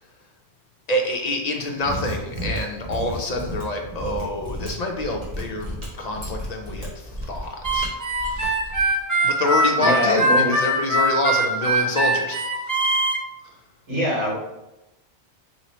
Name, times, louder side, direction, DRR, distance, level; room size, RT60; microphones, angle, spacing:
voice 1, 0.9-8.6 9.2-12.5 13.4-13.5, left 2 dB, 50° left, 2 dB, 0.5 m, -27 dB
Mechanisms, 1.7-8.9, equal, 40° right, 1.3 m, -33 dB
Harmonica, 7.6-13.2, right 1 dB, 20° right, 0.6 m, -21 dB
voice 2, 9.8-10.5 13.9-14.3, equal, 80° right, -5 dB, 1.8 m, -23 dB
3.2 x 3.0 x 4.1 m, 0.91 s
omnidirectional pair, 1.2 m